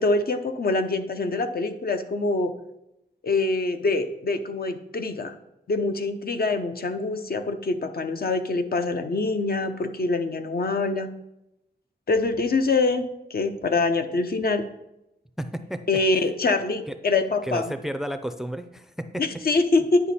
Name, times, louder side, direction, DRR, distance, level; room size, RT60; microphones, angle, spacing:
voice 1, 0.0-2.5 3.2-5.4 5.7-11.1 12.1-14.6 15.9-17.7 19.2-20.0, left 3 dB, 60° left, 7 dB, 0.7 m, -24 dB
voice 2, 15.4-15.8 16.9-17.0 17.4-19.2, equal, ahead, 10 dB, 0.4 m, -32 dB
10.0 x 5.1 x 4.2 m, 0.87 s
wide cardioid pair, 105°, 18 cm